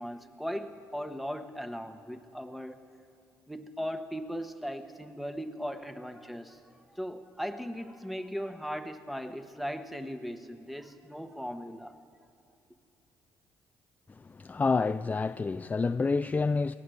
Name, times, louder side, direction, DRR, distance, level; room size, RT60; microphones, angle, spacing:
voice 1, 0.0-2.8 3.5-6.6 6.9-11.9, equal, ahead, 1.3 m, -38 dB
voice 2, 14.1-16.8, left 4 dB, 25° left, 0.4 m, -28 dB
23.0 x 17.0 x 6.7 m
supercardioid pair, 70°, 7 cm